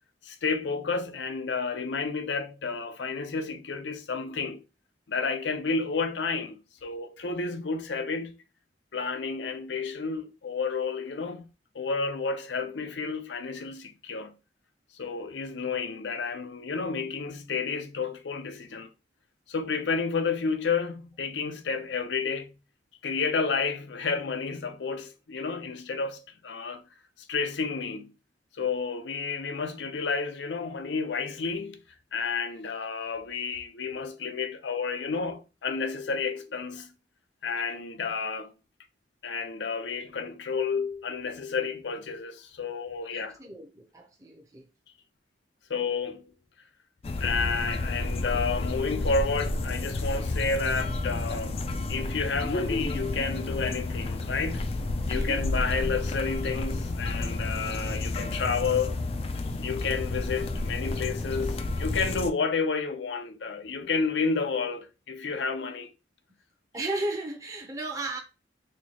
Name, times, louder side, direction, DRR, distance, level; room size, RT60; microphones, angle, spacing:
voice 1, 0.2-4.6 5.1-8.4 8.9-11.5 11.7-14.3 14.9-18.9 19.5-22.5 23.0-26.8 27.3-28.1 28.6-31.8 32.1-36.9 37.4-38.5 39.2-43.4 45.7-46.3 47.2-54.7 55.1-59.0 59.6-65.9, left 4 dB, 90° left, 0.6 m, -31 dB
voice 2, 43.1-44.6 55.0-55.5 66.7-68.2, right 2 dB, 20° right, 0.7 m, -35 dB
sound 1, 47.0-62.3, left 2 dB, 35° left, 0.4 m, -31 dB
4.3 x 2.3 x 2.9 m
head